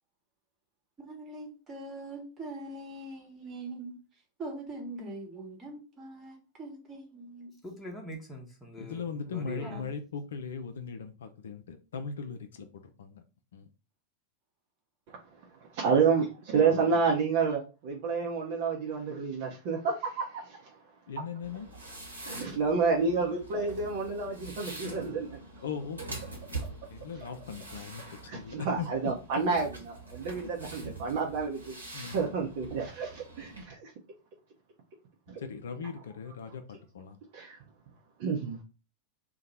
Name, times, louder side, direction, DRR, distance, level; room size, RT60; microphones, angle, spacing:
voice 1, 1.0-4.0 4.4-7.5 9.6-9.9, right 2 dB, 25° right, 1.1 m, -42 dB
voice 2, 7.6-9.9, equal, 10° left, 0.9 m, -43 dB
voice 3, 8.8-13.2 13.5-13.7 16.6-17.0 21.1-21.7 25.6-26.2 26.7-28.9 30.7-31.0 31.9-32.4 35.4-37.2, left 5 dB, 65° left, 0.4 m, -39 dB
voice 4, 15.7-20.6 22.3-25.3 28.3-31.8 32.1-33.9 35.3-35.4 37.3-37.6 38.2-38.6, right 5 dB, 50° right, 0.6 m, -29 dB
sound 1, 21.4-33.6, right 2 dB, 80° right, 1.0 m, -44 dB
2.8 x 2.2 x 4.0 m
figure-of-eight pair, 90°, 0 cm